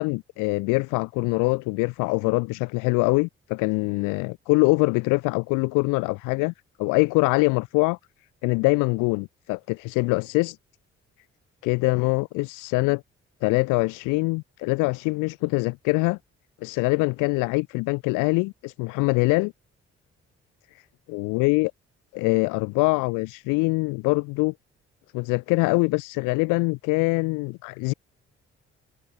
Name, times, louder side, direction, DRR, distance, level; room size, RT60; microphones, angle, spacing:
voice 1, 0.0-6.5 6.8-8.0 8.4-10.6 11.6-13.0 13.4-16.2 16.6-19.5 21.1-21.7 22.1-24.5 25.1-27.9, left 27 dB, 90° left, 0.5 m, -23 dB
supercardioid pair, 50°, 30 cm